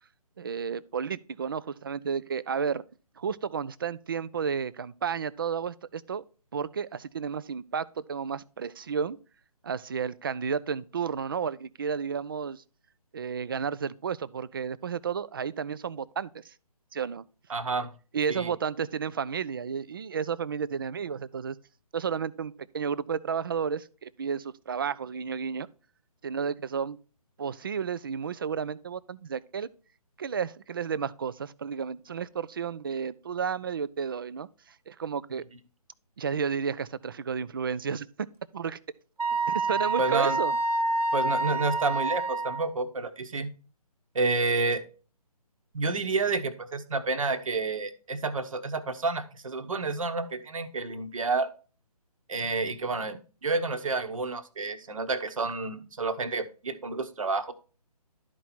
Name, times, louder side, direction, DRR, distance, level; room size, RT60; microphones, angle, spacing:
voice 1, 0.4-2.8 3.2-6.2 6.5-9.2 9.6-12.6 13.1-16.5 16.9-17.2 18.1-21.6 21.9-25.7 26.2-27.0 27.4-29.7 30.2-35.4 36.2-38.3 38.5-38.8 39.5-40.6, right 6 dB, 35° right, 0.4 m, -32 dB
voice 2, 17.5-17.9 18.3-18.5 40.0-40.4 41.1-43.5 44.1-44.8 45.7-51.5 52.3-57.5, right 3 dB, 55° right, 1.2 m, -29 dB
Wind instrument woodwind instrument, 39.2-42.7, right 2 dB, 75° right, 0.9 m, -28 dB
12.0 x 4.6 x 4.2 m
figure-of-eight pair, 145°, 20 cm